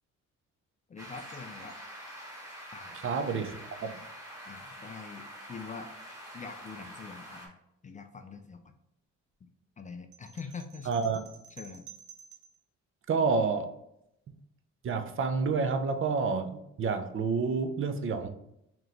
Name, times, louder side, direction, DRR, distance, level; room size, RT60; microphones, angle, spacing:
voice 1, 0.9-1.8 2.7-3.1 4.5-5.9 6.3-7.5 7.8-8.7 9.8-11.2 11.5-11.9, left 5 dB, 25° left, 6 dB, 0.3 m, -44 dB
sound 1, 1.0-7.5, equal, 10° right, 1.3 m, -46 dB
voice 2, 2.9-3.9 10.9-11.2 13.1-13.7 14.8-18.3, right 4 dB, 45° right, 8 dB, 0.5 m, -29 dB
sound 2, 10.1-12.6, right 6 dB, 75° right, 0.8 m, -51 dB
3.7 x 2.9 x 3.3 m, 0.80 s
cardioid pair, 90°, 30 cm